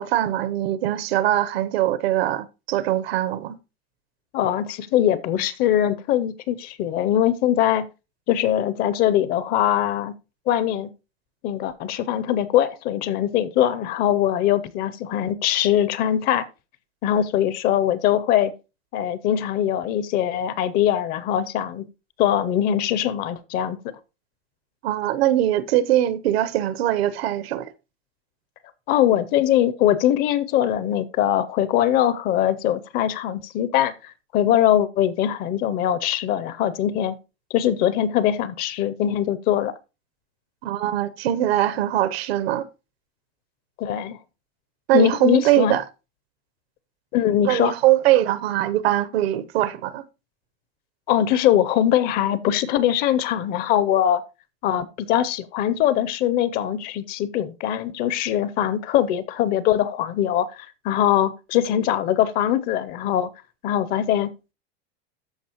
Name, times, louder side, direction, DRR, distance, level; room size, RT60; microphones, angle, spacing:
voice 1, 0.0-3.6 24.8-27.7 40.6-42.7 44.9-45.8 47.4-50.0, right 13 dB, 75° right, 0.9 m, -22 dB
voice 2, 4.3-7.9 8.3-10.1 10.5-10.9 11.4-16.5 17.0-18.5 18.9-21.8 22.2-23.9 28.9-37.2 37.5-39.7 43.8-44.2 44.9-45.8 47.1-47.7 51.1-54.2 54.6-63.3 63.6-64.3, left 11 dB, 30° left, 0.5 m, -22 dB
13.5 x 5.0 x 2.9 m
supercardioid pair, 155°, 31 cm